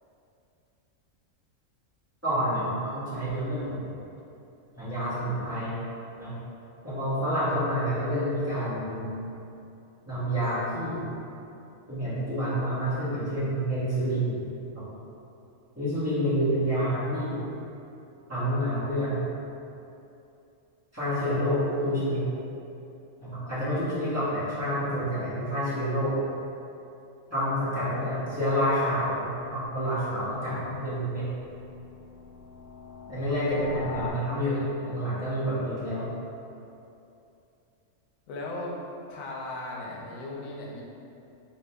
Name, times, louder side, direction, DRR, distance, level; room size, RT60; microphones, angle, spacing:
voice 1, 2.2-3.8 4.7-5.8 6.2-6.3 6.8-9.1 10.0-11.1 11.9-14.4 14.7-14.8 15.8-17.4 18.3-19.2 20.9-22.2 23.2-26.2 27.3-31.3 33.1-36.1, equal, 10° right, -14 dB, 1.4 m, -28 dB
voice 2, 27.6-28.3 38.3-38.7 39.1-40.8, left 2 dB, 90° left, -3 dB, 1.1 m, -37 dB
sound 1, 28.5-34.1, left 6 dB, 55° left, 0.7 m, -44 dB
3.8 x 3.1 x 3.4 m, 2.7 s
omnidirectional pair, 1.4 m